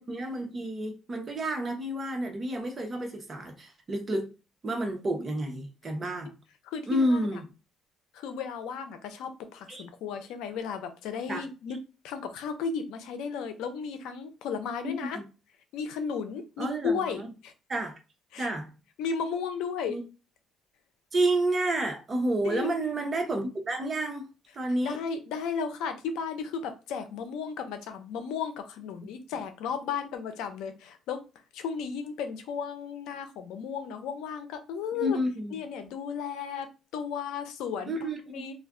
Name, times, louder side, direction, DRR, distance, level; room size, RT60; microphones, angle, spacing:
voice 1, 0.0-4.3 4.6-6.3 6.9-7.4 9.7-9.8 11.3-11.4 14.8-15.2 16.6-17.3 17.7-18.0 18.4-18.7 19.9-20.0 21.1-24.3 24.5-25.0 34.9-35.6 37.9-38.4, right 1 dB, 30° right, 0.8 m, -30 dB
voice 2, 6.6-7.4 8.1-11.8 12.0-15.2 15.7-17.5 18.3-18.5 19.0-20.0 22.4-22.7 24.8-31.2 31.5-35.2 35.5-36.7 36.9-37.9 38.3-38.5, left 6 dB, 85° left, 0.5 m, -34 dB
2.4 x 2.2 x 3.6 m
cardioid pair, 110°, 0 cm